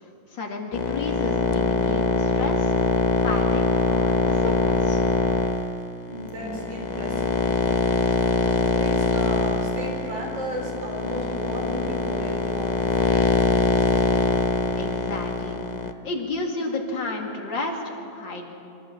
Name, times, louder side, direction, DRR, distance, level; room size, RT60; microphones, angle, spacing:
voice 1, 0.3-2.7 3.2-3.6 3.9-5.0 14.8-15.7 16.0-18.5, left 2 dB, 75° left, 1 dB, 2.9 m, -32 dB
sound 1, 0.7-15.9, left 3 dB, 35° left, 0.7 m, -23 dB
voice 2, 6.1-7.4 8.4-12.8 13.1-13.2, equal, 80° right, 0 dB, 4.7 m, -34 dB
25.5 x 14.0 x 7.3 m, 2.8 s
omnidirectional pair, 2.0 m